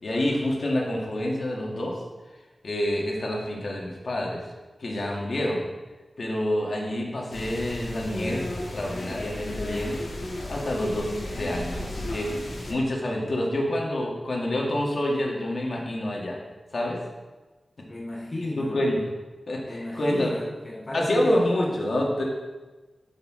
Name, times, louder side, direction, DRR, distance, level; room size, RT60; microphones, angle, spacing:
voice 1, 0.0-1.9 2.6-4.4 4.8-5.6 6.2-10.0 10.5-12.3 12.7-16.4 16.7-17.0 18.6-19.0 19.5-20.3 20.9-22.2, left 1 dB, 65° left, -2 dB, 1.5 m, -27 dB
sound 1, 7.3-12.7, left 1 dB, 85° left, 1.5 m, -34 dB
voice 2, 17.9-18.8 19.7-21.4, left 2 dB, 35° left, -2 dB, 0.7 m, -34 dB
8.5 x 5.5 x 3.7 m, 1.2 s
wide cardioid pair, 90°, 0 cm